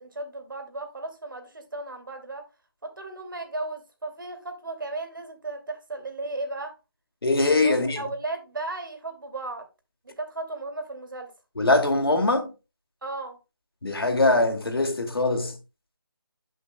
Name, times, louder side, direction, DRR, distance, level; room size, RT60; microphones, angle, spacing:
voice 1, 0.0-2.4 2.8-6.8 7.4-9.7 10.0-11.3 13.0-13.4, right 2 dB, 60° right, 2.7 m, -35 dB
voice 2, 7.2-8.0 11.6-12.5 13.8-15.6, left 2 dB, 85° left, 2.2 m, -22 dB
12.5 x 5.6 x 2.2 m
figure-of-eight pair, 180°, 12 cm